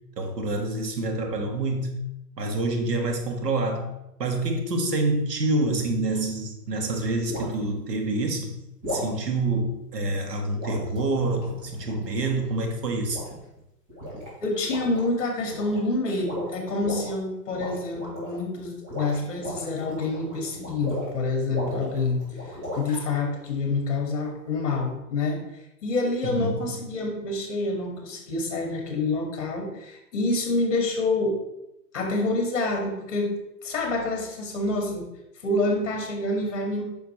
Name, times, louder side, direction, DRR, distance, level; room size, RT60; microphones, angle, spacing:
voice 1, 0.2-2.1 2.4-3.9 4.2-8.6 8.9-13.2 26.2-26.7, right 2 dB, 75° right, 4 dB, 1.8 m, -27 dB
sound 1, 6.1-6.3 7.3-7.6 8.8-9.2 10.5-12.4 13.1-13.6 13.9-14.3 14.6-15.1 15.4-15.9 16.2-17.1 17.5-18.4 18.8-21.2 21.5-23.0, equal, 25° right, 2.5 m, -36 dB
voice 2, 14.4-25.4 25.8-31.4 31.9-33.3 33.6-35.1 35.4-36.8, left 2 dB, 50° left, 2 dB, 2.0 m, -27 dB
9.1 x 5.8 x 3.2 m, 0.86 s
hypercardioid pair, 180°, 48 cm